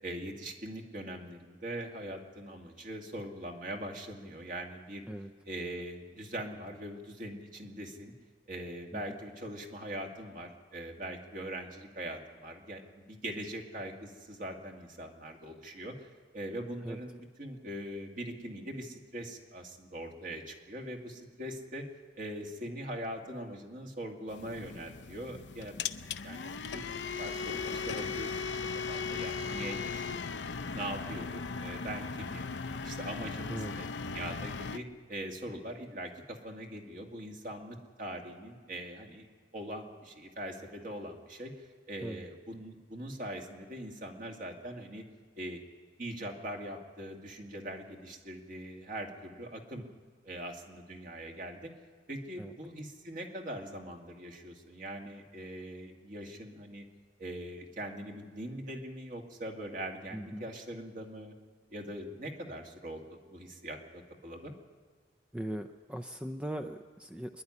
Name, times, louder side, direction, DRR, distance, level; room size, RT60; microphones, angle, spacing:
voice 1, 0.0-5.1 5.5-8.1 8.5-16.1 16.3-21.9 22.2-25.7 26.2-26.9 27.2-28.6 28.9-30.4 30.7-32.5 32.8-39.3 39.5-41.5 41.9-45.0 45.4-45.6 46.0-49.9 50.2-51.7 52.1-56.8 57.2-61.3 61.7-64.5, right 1 dB, 50° right, 1 dB, 2.3 m, -42 dB
sound 1, 24.3-34.8, left 5 dB, 70° left, 0.6 m, -37 dB
voice 2, 60.1-60.5 65.3-67.4, right 1 dB, 5° right, 7 dB, 0.5 m, -39 dB
25.0 x 11.0 x 9.8 m, 1.5 s
head